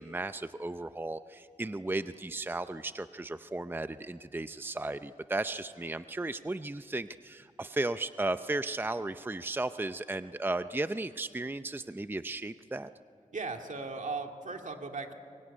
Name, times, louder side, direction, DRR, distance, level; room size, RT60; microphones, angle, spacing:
voice 1, 0.0-12.9, right 2 dB, 15° right, 11 dB, 0.6 m, -35 dB
voice 2, 13.3-15.1, right 3 dB, 65° right, 4 dB, 2.3 m, -37 dB
24.0 x 22.5 x 9.8 m, 2.5 s
wide cardioid pair, 75°, 14 cm